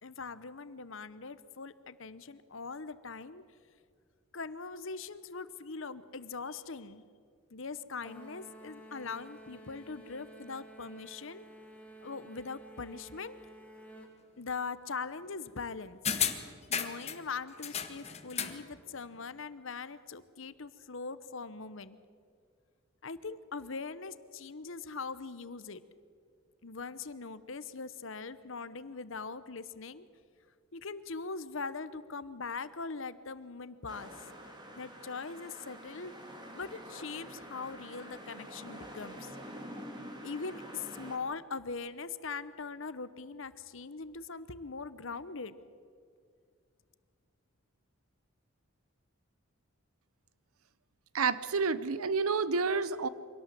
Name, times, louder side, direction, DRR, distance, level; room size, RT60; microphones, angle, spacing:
voice 1, 0.0-3.4 4.3-7.0 7.5-11.4 12.0-13.4 14.4-16.0 16.7-22.0 23.0-25.8 26.6-30.0 30.7-34.1 34.8-36.1 36.5-39.3 40.2-45.5, left 4 dB, 60° left, 14 dB, 0.9 m, -41 dB
sound 1, 8.0-14.1, right 1 dB, 5° left, 2.4 m, -52 dB
sound 2, 16.1-17.2 17.6-18.6 19.0-19.1, left 8 dB, 30° left, 1.3 m, -33 dB
sound 3, 33.9-41.2, equal, 20° right, 2.5 m, -47 dB
voice 2, 51.1-53.1, right 4 dB, 85° right, 16 dB, 0.9 m, -29 dB
24.0 x 18.0 x 7.8 m, 2.2 s
head